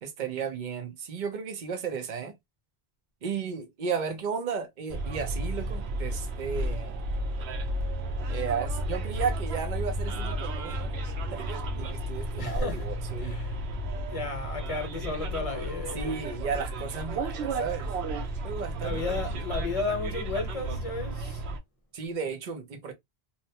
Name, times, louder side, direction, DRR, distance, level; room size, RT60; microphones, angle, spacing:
voice 1, 0.0-2.3 3.2-7.0 8.3-13.4 15.9-17.9 18.4-19.4 21.9-22.9, right 6 dB, 50° right, 0.8 m, -34 dB
Bus, 4.9-21.6, right 1 dB, 85° right, 0.8 m, -33 dB
voice 2, 12.4-12.8 13.2-13.5 14.1-16.2 18.8-21.4, left 3 dB, 35° left, 0.8 m, -33 dB
2.8 x 2.1 x 2.7 m
omnidirectional pair, 1.1 m